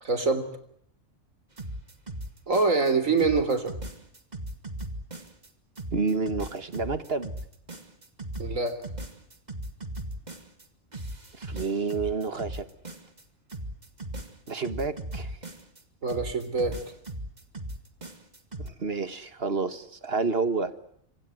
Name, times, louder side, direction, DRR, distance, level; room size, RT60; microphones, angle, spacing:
voice 1, 0.0-0.5 2.5-3.8 8.4-8.8 16.0-16.8, right 3 dB, 85° right, 12 dB, 3.8 m, -25 dB
sound 1, 1.6-2.9 3.2-5.5 5.8-10.6 10.9-13.2 13.5-15.8 16.1-18.7, right 1 dB, 35° right, 2.5 m, -38 dB
voice 2, 5.9-7.3 11.4-12.7 14.5-15.4 18.6-20.7, right 4 dB, 50° right, 12 dB, 1.8 m, -29 dB
26.0 x 26.0 x 7.7 m, 0.67 s
omnidirectional pair, 1.3 m